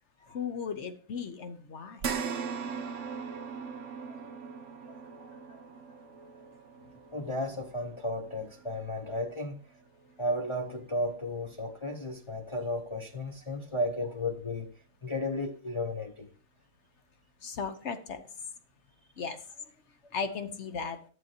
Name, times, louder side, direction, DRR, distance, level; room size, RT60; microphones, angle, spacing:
voice 1, 0.3-2.0 17.4-18.2 19.2-19.4 20.1-21.0, left 5 dB, 55° left, 1.1 m, -36 dB
sound 1, 2.0-10.6 11.1-11.2 12.6-12.7, right 6 dB, 60° right, 1.2 m, -40 dB
voice 2, 7.1-9.6 10.2-14.7 15.0-16.3, left 1 dB, 30° left, 0.6 m, -34 dB
11.0 x 7.6 x 2.8 m
omnidirectional pair, 1.5 m